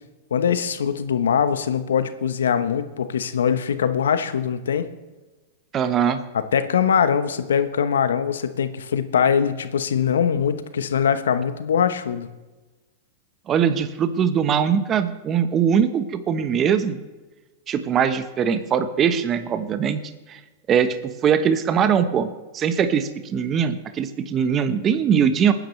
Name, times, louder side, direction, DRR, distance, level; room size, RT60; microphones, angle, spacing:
voice 1, 0.3-4.9 6.3-12.3, left 7 dB, 85° left, 11 dB, 1.0 m, -22 dB
voice 2, 5.7-6.2 13.5-17.0 17.7-20.0 20.3-20.4 20.7-21.0 21.2-22.3 22.5-25.5, right 7 dB, 30° right, 10 dB, 1.1 m, -21 dB
22.5 x 10.0 x 3.3 m, 1.2 s
hypercardioid pair, 110°, 0 cm